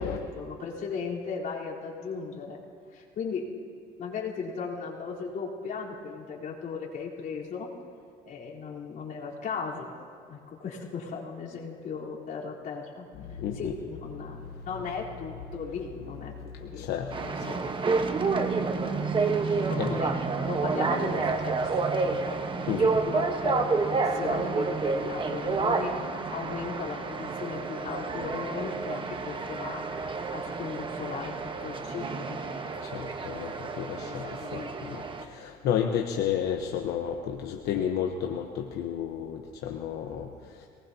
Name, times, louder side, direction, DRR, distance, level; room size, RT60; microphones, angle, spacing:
voice 1, 0.0-2.6 2.9-3.4 4.0-7.7 8.2-9.9 10.3-13.1 13.6-16.3 16.6-16.9 17.2-17.7 19.7-21.6 22.0-25.9 26.3-29.8 30.3-31.3 31.6-32.4 34.0-35.0, left 5 dB, 55° left, -5 dB, 3.7 m, -37 dB
voice 2, 13.4-13.7 16.8-17.1 19.4-19.9 22.7-22.8 32.8-34.6 34.9-35.0 35.3-40.3, left 9 dB, 80° left, 3 dB, 1.0 m, -31 dB
sound 1, 17.1-35.2, right 4 dB, 30° right, 1.1 m, -29 dB
24.5 x 19.5 x 2.8 m, 2.3 s
cardioid pair, 110°, 17 cm